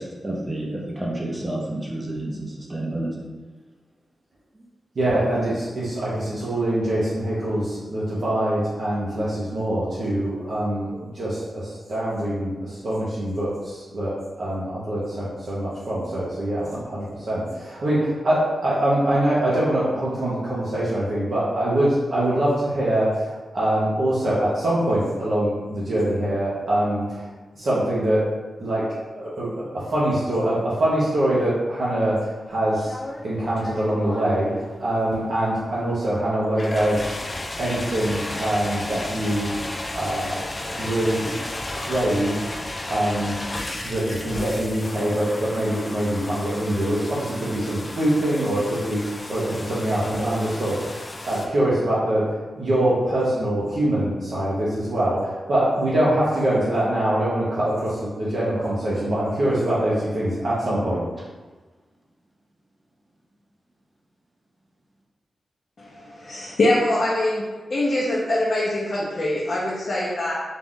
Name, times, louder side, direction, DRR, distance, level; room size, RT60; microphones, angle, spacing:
voice 1, 0.0-3.1, right 1 dB, 15° right, -3 dB, 0.7 m, -30 dB
voice 2, 4.9-28.3 28.6-33.0 33.2-37.3 37.6-39.5 39.9-40.5 40.8-41.3 41.7-42.5 42.9-43.4 43.8-61.0, right 1 dB, 55° right, -8 dB, 0.8 m, -24 dB
sound 1, 32.5-51.5, left 1 dB, 25° left, 0.3 m, -34 dB
voice 3, 65.8-67.4 67.7-70.3, left 1 dB, 50° left, -6 dB, 0.7 m, -23 dB
3.9 x 2.4 x 3.7 m, 1.3 s
wide cardioid pair, 155°, 0 cm